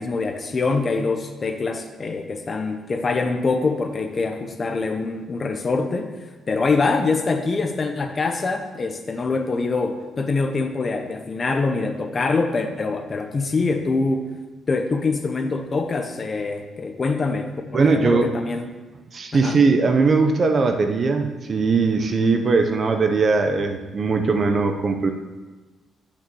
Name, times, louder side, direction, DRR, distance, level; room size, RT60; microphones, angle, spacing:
voice 1, 0.0-6.1 6.5-14.3 14.7-18.7 19.3-19.6, left 3 dB, 25° left, 6 dB, 0.8 m, -24 dB
voice 2, 17.7-18.3 19.1-25.1, right 4 dB, 30° right, 6 dB, 0.8 m, -20 dB
8.6 x 6.4 x 6.9 m, 1.3 s
cardioid pair, 165°, 0 cm